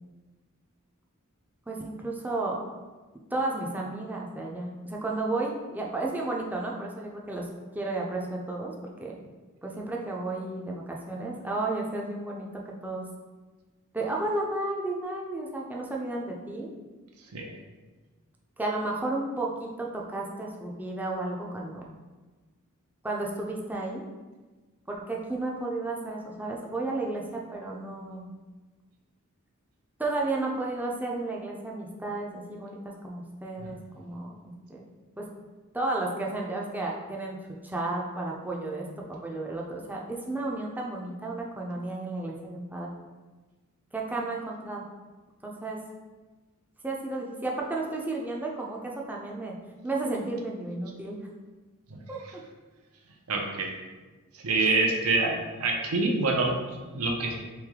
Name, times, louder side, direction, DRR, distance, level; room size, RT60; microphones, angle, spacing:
voice 1, 1.7-2.6 3.3-7.5 7.7-9.2 9.6-12.5 12.8-13.1 13.9-16.7 18.6-21.9 23.0-24.0 24.9-28.3 30.0-34.8 35.2-35.3 35.7-37.4 37.6-42.9 43.9-44.8 45.4-45.8 46.8-49.6 49.8-51.2 52.1-52.2 54.6-54.8, right 2 dB, 10° right, -2 dB, 0.4 m, -33 dB
voice 2, 53.3-53.7 54.3-57.4, right 3 dB, 90° right, 1 dB, 0.6 m, -26 dB
3.3 x 3.1 x 3.5 m, 1.3 s
head